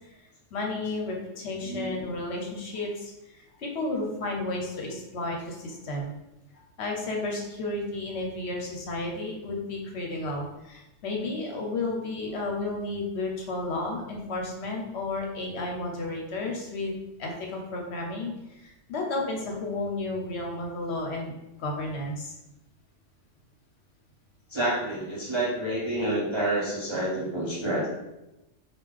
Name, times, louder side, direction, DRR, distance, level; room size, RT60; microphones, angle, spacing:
voice 1, 0.5-6.1 6.8-22.3, left 2 dB, 65° left, 0 dB, 0.9 m, -32 dB
voice 2, 1.6-2.0 24.5-27.9, right 1 dB, 35° right, -7 dB, 0.5 m, -28 dB
3.2 x 2.4 x 3.6 m, 0.94 s
omnidirectional pair, 1.3 m